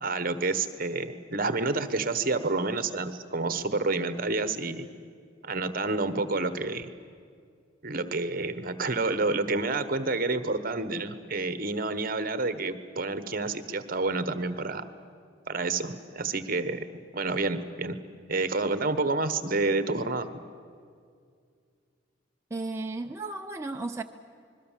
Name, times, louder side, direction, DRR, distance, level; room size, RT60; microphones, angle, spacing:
voice 1, 0.0-4.9 5.4-6.9 7.8-14.8 15.5-18.0 18.3-20.3, right 3 dB, 50° right, 12 dB, 1.2 m, -29 dB
voice 2, 22.5-24.0, right 2 dB, 15° right, 2 dB, 0.6 m, -34 dB
27.0 x 21.5 x 7.5 m, 2.2 s
head